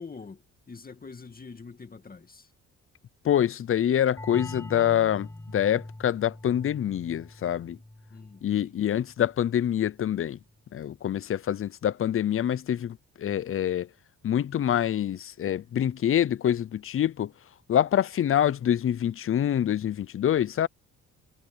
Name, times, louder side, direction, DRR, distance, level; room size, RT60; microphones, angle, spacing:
voice 1, 0.0-2.5 8.1-9.0, left 4 dB, 30° left, 2.3 m, -45 dB
voice 2, 3.2-7.8 8.4-10.4 10.7-13.9 14.2-17.3 17.7-20.7, left 10 dB, 45° left, 0.7 m, -26 dB
sound 1, 4.2-9.6, left 1 dB, 10° left, 3.2 m, -44 dB
cardioid pair, 90°, 30 cm